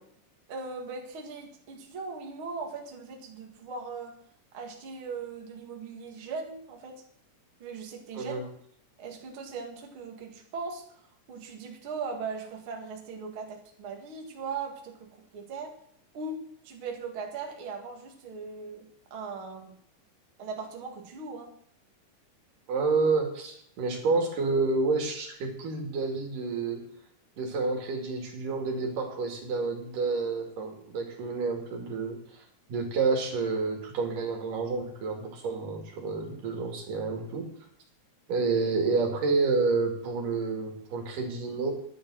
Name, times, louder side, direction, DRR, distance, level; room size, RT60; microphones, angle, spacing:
voice 1, 0.5-4.1 4.5-7.0 7.6-8.5 9.0-11.0 11.3-15.7 16.1-19.8 20.4-21.5, right 4 dB, 45° right, 1 dB, 2.6 m, -39 dB
voice 2, 22.7-26.8 27.4-32.4 32.7-37.5 38.3-41.7, right 4 dB, 80° right, 2 dB, 4.0 m, -29 dB
11.0 x 10.5 x 6.3 m, 0.66 s
omnidirectional pair, 3.7 m